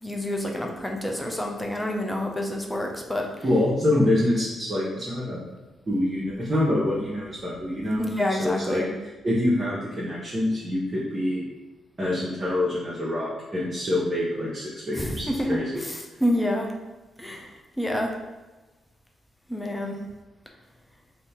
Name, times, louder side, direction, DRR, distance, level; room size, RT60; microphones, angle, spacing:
voice 1, 0.0-3.4 8.0-8.9 15.0-16.7 17.2-18.1 19.5-20.0, left 1 dB, 10° left, 1 dB, 0.6 m, -28 dB
voice 2, 3.4-5.4 5.9-8.0 8.4-8.8 9.2-11.4 12.0-15.7, left 1 dB, 35° right, -8 dB, 0.9 m, -25 dB
2.8 x 2.7 x 3.5 m, 1.2 s
supercardioid pair, 55°, 0 cm